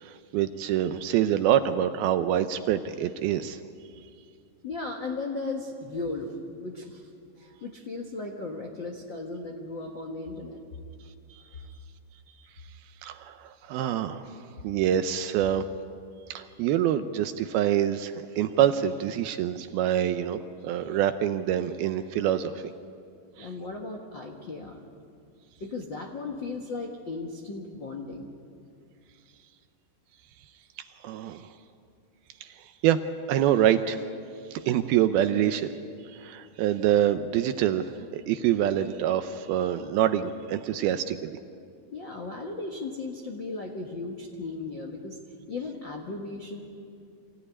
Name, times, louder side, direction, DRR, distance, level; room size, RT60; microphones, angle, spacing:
voice 1, 0.0-3.6 13.0-14.3 14.6-15.7 16.3-22.6 23.4-23.5 31.0-31.5 32.4-33.0 33.3-34.0 34.5-35.7 36.1-41.3, right 11 dB, 80° right, 9 dB, 2.4 m, -26 dB
voice 2, 4.6-7.0 7.4-10.6 23.4-24.8 25.6-28.3 41.9-45.2 45.5-46.6, left 3 dB, 70° left, 1 dB, 1.1 m, -36 dB
25.5 x 16.5 x 9.9 m, 2.4 s
omnidirectional pair, 4.8 m